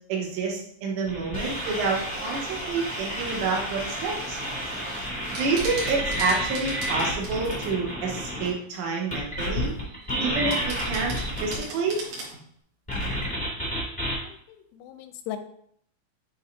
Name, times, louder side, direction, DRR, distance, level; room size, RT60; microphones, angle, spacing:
voice 1, 0.1-4.4 5.3-9.7 10.2-11.1 11.4-12.0, right 4 dB, 75° right, -1 dB, 3.4 m, -28 dB
Broken Radar, 1.1-8.5 9.1-11.6 12.9-14.1, equal, 5° left, 0.6 m, -30 dB
sound 1, 5.2-7.7 8.1-8.8 9.6-10.1 10.5-12.4, right 2 dB, 60° right, 2.1 m, -39 dB
voice 2, 14.2-15.4, left 13 dB, 90° left, 8 dB, 3.4 m, -39 dB
9.6 x 4.8 x 2.7 m, 0.66 s
omnidirectional pair, 6.0 m